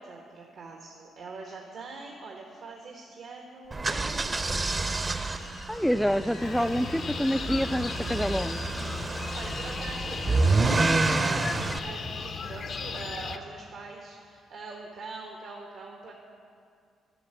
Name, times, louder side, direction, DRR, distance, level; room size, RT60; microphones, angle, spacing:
voice 1, 0.0-4.9 9.0-16.1, right 3 dB, 65° right, 0 dB, 1.3 m, -42 dB
sound 1, 3.6-8.8, left 4 dB, 85° left, 1.3 m, -50 dB
sound 2, 3.7-11.8, right 3 dB, 35° right, 0.8 m, -28 dB
voice 2, 5.7-8.6, equal, ahead, 12 dB, 0.3 m, -27 dB
sound 3, 6.4-13.4, left 5 dB, 60° left, 0.7 m, -37 dB
11.5 x 6.6 x 9.0 m, 2.3 s
supercardioid pair, 55°, 0 cm